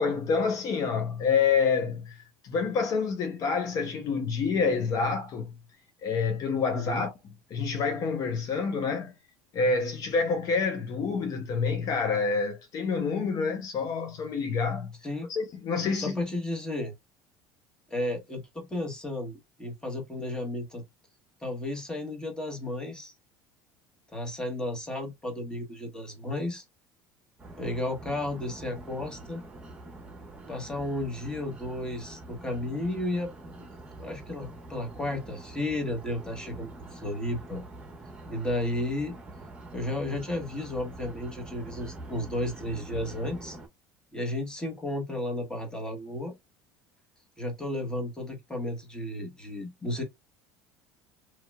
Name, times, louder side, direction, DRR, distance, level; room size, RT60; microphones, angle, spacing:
voice 1, 0.0-5.5 6.0-7.1 7.5-9.1 9.5-14.9 15.3-16.2, left 5 dB, 50° left, 0.7 m, -27 dB
voice 2, 6.7-7.0 15.0-15.3 15.9-16.9 17.9-20.8 21.4-23.1 24.1-26.6 27.6-29.4 30.5-33.3 33.6-33.7 34.0-37.6 38.3-39.1 39.7-43.6 44.1-46.3 47.4-50.0, left 1 dB, 10° left, 1.3 m, -33 dB
sound 1, 27.4-43.7, right 2 dB, 15° right, 1.2 m, -45 dB
3.1 x 2.8 x 2.3 m
supercardioid pair, 110°, 8 cm